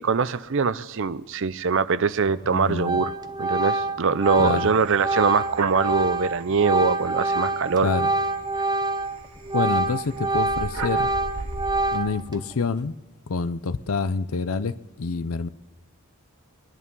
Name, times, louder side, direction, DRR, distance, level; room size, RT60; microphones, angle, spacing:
voice 1, 0.0-3.1 3.4-7.9, right 5 dB, 60° right, 0.6 m, -23 dB
Organ, 2.3-2.5 2.8-9.2 9.4-12.3, right 2 dB, 20° right, 0.7 m, -26 dB
voice 2, 2.5-3.0 4.4-4.7 7.8-8.1 9.5-11.1 11.9-12.9 13.3-15.5, left 4 dB, 75° left, 0.6 m, -27 dB
sound 1, 4.2-12.0, right 2 dB, 75° right, 2.2 m, -39 dB
23.5 x 11.0 x 5.4 m
head